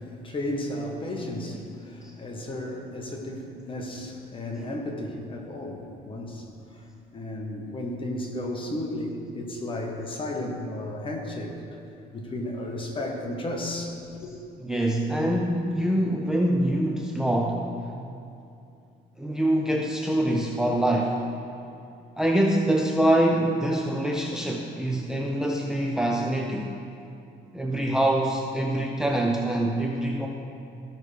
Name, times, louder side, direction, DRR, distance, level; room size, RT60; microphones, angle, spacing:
voice 1, 0.0-6.5 6.7-6.8 7.1-11.5 12.1-14.3, left 1 dB, 30° left, 1 dB, 1.3 m, -33 dB
voice 2, 14.6-17.7 19.2-21.2 22.2-26.7 27.5-30.3, right 1 dB, 5° right, 0 dB, 0.6 m, -24 dB
15.0 x 6.2 x 3.4 m, 2.6 s
cardioid pair, 110°, 17 cm